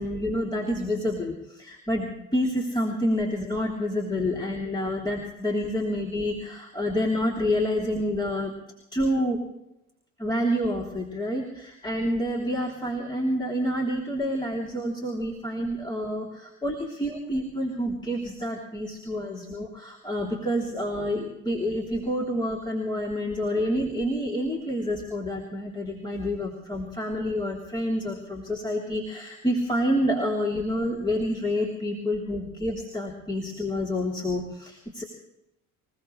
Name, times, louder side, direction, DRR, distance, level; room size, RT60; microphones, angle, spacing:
voice 1, 0.0-8.5 8.9-9.4 10.2-35.0, equal, 10° left, -3 dB, 3.3 m, -28 dB
26.5 x 16.5 x 3.3 m, 0.87 s
figure-of-eight pair, 60°, 42 cm